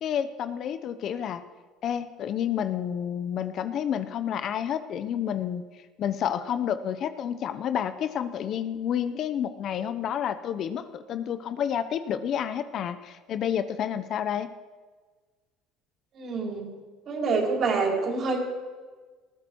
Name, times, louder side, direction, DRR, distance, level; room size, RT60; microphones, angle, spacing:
voice 1, 0.0-1.4 1.8-5.6 6.0-14.5, left 9 dB, 50° left, 11 dB, 0.9 m, -29 dB
voice 2, 16.1-16.7 17.1-18.4, right 4 dB, 45° right, 0 dB, 4.6 m, -26 dB
19.5 x 15.0 x 4.7 m, 1.4 s
cardioid pair, 130°, 0 cm